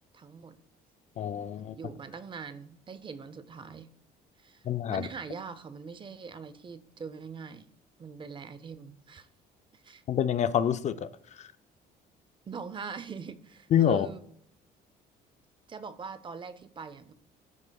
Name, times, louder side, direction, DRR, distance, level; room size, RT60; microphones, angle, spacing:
voice 1, 0.1-0.6 1.7-3.9 4.4-7.7 8.0-9.3 9.7-10.0 12.5-14.2 15.7-17.1, right 5 dB, 30° right, 0.5 m, -42 dB
voice 2, 1.2-1.7 4.6-5.1 10.1-11.5 13.7-14.1, left 9 dB, 45° left, 0.4 m, -27 dB
12.5 x 4.7 x 2.3 m
cardioid pair, 110°, 17 cm